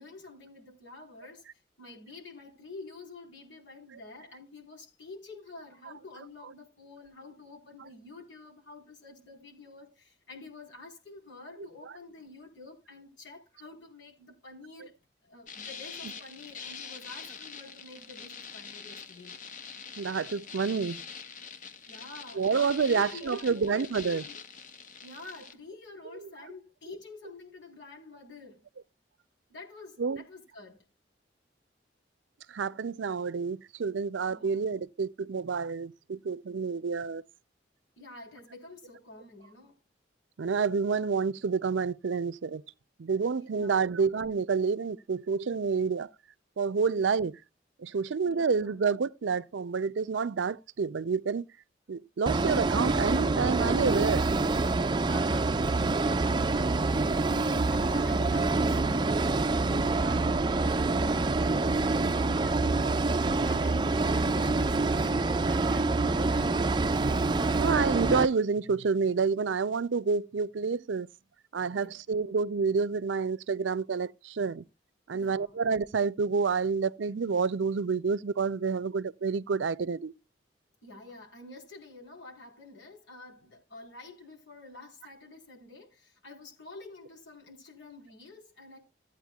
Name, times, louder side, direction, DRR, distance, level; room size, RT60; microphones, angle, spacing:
voice 1, 0.0-14.9 15.2-19.4 21.5-21.6 21.9-23.9 24.2-24.4 25.0-28.6 29.5-30.8 34.3-34.6 38.0-39.8 43.5-43.8 48.2-48.8 54.9-56.8 57.7-66.6 71.7-72.0 75.1-75.6 80.8-88.8, left 3 dB, 80° left, 4.1 m, -48 dB
voice 2, 5.8-6.5 7.8-7.9 11.9-12.0 16.0-16.1 20.0-21.0 22.4-24.3 26.1-26.5 30.0-30.2 32.5-37.2 40.4-42.6 43.0-46.1 46.6-47.4 47.8-51.5 51.9-54.3 67.6-71.1 71.5-74.6 75.1-80.1, right 5 dB, 90° right, 0.5 m, -29 dB
sound 1, 15.5-25.5, left 6 dB, 45° left, 0.9 m, -44 dB
sound 2, 52.3-68.3, right 3 dB, 25° right, 0.4 m, -26 dB
15.5 x 8.8 x 2.3 m
head